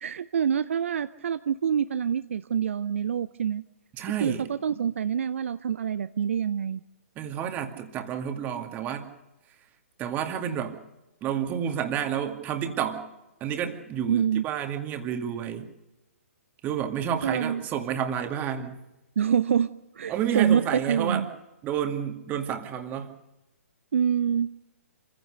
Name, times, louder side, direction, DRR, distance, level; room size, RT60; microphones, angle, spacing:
voice 1, 0.0-3.6 4.2-6.8 14.1-14.4 17.2-17.6 19.2-19.7 20.0-20.6 20.9-21.3 23.9-24.5, right 8 dB, 60° right, 13 dB, 0.6 m, -26 dB
voice 2, 3.9-4.5 7.2-9.1 10.0-10.8 11.2-13.1 13.4-15.7 16.6-18.8 20.1-21.3 21.6-23.2, right 9 dB, 20° right, 5 dB, 2.3 m, -30 dB
26.5 x 16.0 x 6.6 m, 0.95 s
figure-of-eight pair, 130°, 8 cm